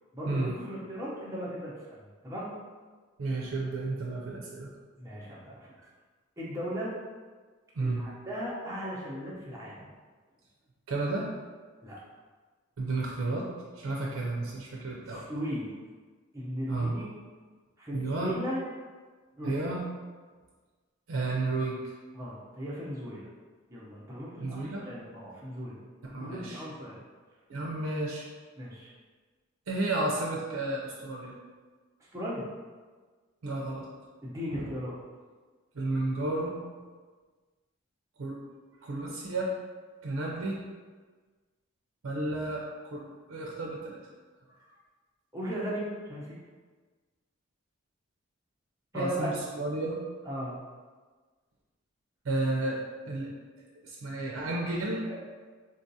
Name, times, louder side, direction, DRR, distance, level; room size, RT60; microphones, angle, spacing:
voice 1, 0.1-2.5 5.0-5.7 6.4-6.9 7.8-9.9 11.8-12.0 15.1-15.7 16.3-17.1 17.8-18.6 19.4-19.5 22.1-23.3 23.7-25.8 26.2-27.0 28.6-28.9 32.1-32.5 34.2-35.0 45.3-46.4 48.9-49.3 50.3-50.6 55.0-55.2, equal, 15° right, -7 dB, 0.6 m, -37 dB
voice 2, 3.2-4.7 7.7-8.0 10.9-11.3 12.8-13.5 13.8-15.3 16.7-17.0 17.9-18.3 19.4-19.8 21.1-21.8 24.4-24.8 26.0-26.6 27.5-28.2 29.7-31.3 33.4-33.9 34.5-34.6 35.8-36.6 38.2-38.4 38.8-39.5 40.0-40.6 42.0-42.6 42.9-43.0 43.3-44.0 48.9-50.0 52.2-52.8 53.0-53.3 53.8-55.0, right 2 dB, 75° right, -2 dB, 0.4 m, -32 dB
3.8 x 2.4 x 2.7 m, 1.4 s
head